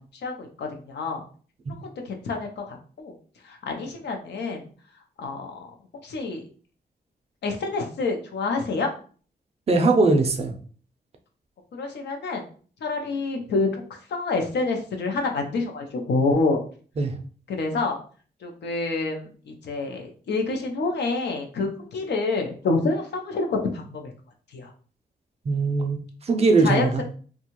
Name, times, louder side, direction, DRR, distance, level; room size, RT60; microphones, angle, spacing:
voice 1, 0.2-1.2 1.8-3.1 3.4-4.7 5.2-5.7 6.0-6.4 7.4-8.9 11.7-12.4 12.8-16.6 17.5-18.0 18.4-24.1 24.5-24.7 26.6-27.0, left 3 dB, 80° left, 3 dB, 0.6 m, -27 dB
voice 2, 9.7-10.5 17.0-17.1 25.5-26.0 26.3-27.0, right 3 dB, 40° right, 4 dB, 0.4 m, -20 dB
2.6 x 2.3 x 2.9 m, 0.42 s
wide cardioid pair, 150°, 17 cm